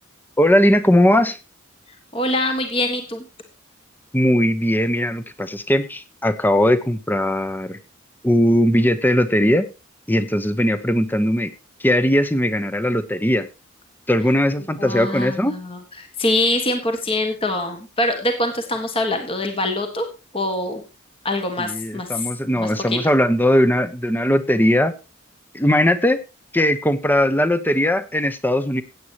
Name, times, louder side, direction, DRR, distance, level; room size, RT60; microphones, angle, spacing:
voice 1, 0.4-1.4 4.1-7.8 8.2-9.7 10.1-11.5 11.8-13.5 14.1-15.6 21.6-24.9 25.5-26.2 26.5-28.8, equal, 10° left, 11 dB, 0.9 m, -19 dB
voice 2, 2.1-3.2 14.8-20.1 20.3-20.8 21.2-22.3 22.5-23.0, left 1 dB, 25° left, 5 dB, 1.6 m, -24 dB
16.0 x 8.8 x 2.9 m, 0.28 s
head